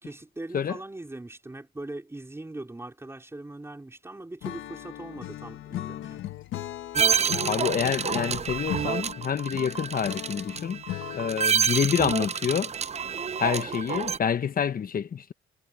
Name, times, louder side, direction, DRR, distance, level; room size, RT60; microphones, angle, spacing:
voice 1, 0.0-6.2, right 2 dB, 15° right, 3.8 m, -40 dB
Acoustic guitar / Strum, 4.4-11.6, left 13 dB, 80° left, 1.4 m, -38 dB
sound 1, 6.9-14.2, right 7 dB, 35° right, 0.6 m, -28 dB
voice 2, 7.4-10.8 11.1-12.7 13.4-15.3, left 7 dB, 45° left, 1.2 m, -27 dB
cardioid pair, 90°, 20 cm